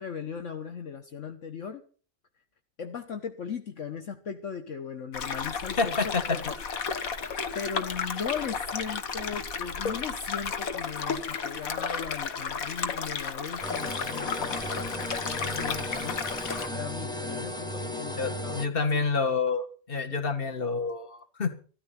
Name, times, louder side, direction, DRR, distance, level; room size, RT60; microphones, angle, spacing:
voice 1, 0.0-1.8 2.8-6.5 7.5-16.4 16.7-18.8 19.1-19.2, left 6 dB, 65° left, 6 dB, 1.5 m, -38 dB
sound 1, 5.1-16.7, left 5 dB, 85° left, 1.8 m, -33 dB
voice 2, 5.8-6.4 18.2-21.6, left 4 dB, 40° left, 6 dB, 2.0 m, -28 dB
sound 2, 13.6-18.7, left 1 dB, 5° left, 1.1 m, -35 dB
14.5 x 13.5 x 5.8 m, 0.40 s
omnidirectional pair, 1.4 m